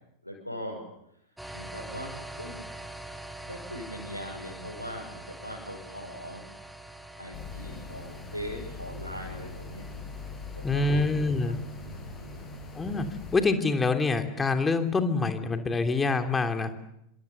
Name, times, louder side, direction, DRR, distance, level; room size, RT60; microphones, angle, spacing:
voice 1, 0.2-0.8 1.5-2.6 3.4-6.4 7.2-9.9 10.5-11.5 11.8-12.6, equal, 90° left, -3 dB, 6.4 m, -41 dB
sound 1, 1.4-13.4, right 1 dB, 5° right, 2.3 m, -45 dB
sound 2, 7.3-13.4, left 4 dB, 30° left, 6.5 m, -42 dB
voice 2, 10.6-11.6 12.7-13.1 13.3-16.7, left 3 dB, 15° left, 6 dB, 3.1 m, -26 dB
27.5 x 26.5 x 7.1 m, 0.79 s
figure-of-eight pair, 90°, 0 cm